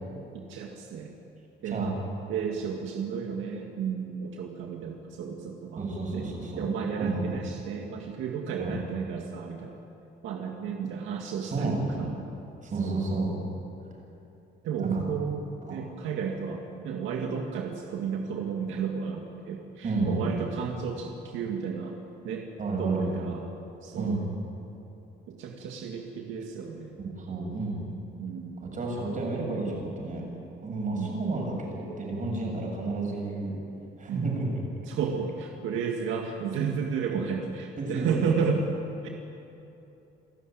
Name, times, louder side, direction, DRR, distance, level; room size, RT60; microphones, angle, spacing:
voice 1, 0.3-1.1 1.6-1.9 2.3-5.8 6.1-6.3 6.6-9.8 10.2-12.1 12.8-13.0 14.6-22.0 22.2-22.5 22.8-23.4 23.8-24.2 25.3-27.0 28.2-28.6 30.9-31.2 34.1-34.3 34.9-38.7 39.0-39.1, right 6 dB, 90° right, 1 dB, 2.0 m, -32 dB
voice 2, 5.8-6.6 7.0-7.2 8.6-8.7 11.5-12.2 12.6-13.3 14.8-15.0 15.7-15.9 19.8-20.3 22.6-23.1 24.0-24.3 27.0-27.8 28.6-30.2 30.6-33.6 34.0-34.6 37.1-37.2 37.8-38.3, right 3 dB, 40° right, -1 dB, 7.5 m, -31 dB
28.5 x 13.5 x 9.3 m, 2.9 s
cardioid pair, 115°, 20 cm